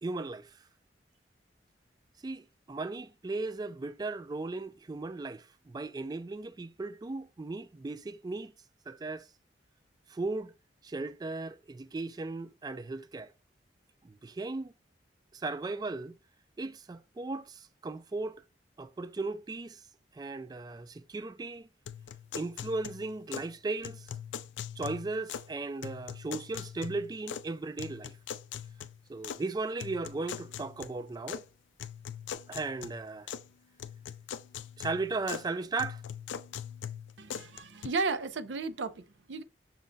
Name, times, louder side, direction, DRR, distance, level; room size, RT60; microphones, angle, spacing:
voice 1, 0.0-0.6 2.2-8.5 8.9-9.3 10.1-10.5 10.8-13.3 14.0-14.7 15.3-16.2 16.6-18.4 18.8-19.8 20.1-21.7 22.3-24.1 24.8-28.2 29.1-31.4 32.5-33.3 34.8-36.0, right 3 dB, 20° right, 0.3 m, -36 dB
sound 1, 21.9-23.5 23.8-25.5 25.8-27.5 27.8-29.4 29.8-31.4 31.8-33.5 33.8-35.5 35.8-37.9, left 8 dB, 85° left, 0.4 m, -42 dB
voice 2, 37.2-39.4, right 4 dB, 80° right, 0.6 m, -34 dB
6.3 x 2.2 x 3.8 m
head